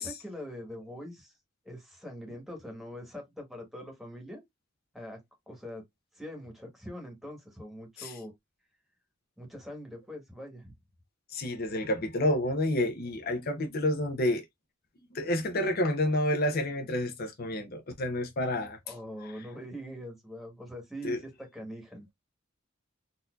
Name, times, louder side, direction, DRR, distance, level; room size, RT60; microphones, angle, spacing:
voice 1, 0.0-1.3 1.6-4.4 4.9-5.2 5.5-5.8 6.1-8.3 9.4-10.7 18.9-22.1, equal, ahead, 1.2 m, -43 dB
voice 2, 11.3-14.4 15.1-18.8 21.0-21.2, left 1 dB, 50° left, 0.7 m, -29 dB
4.0 x 2.7 x 2.3 m
head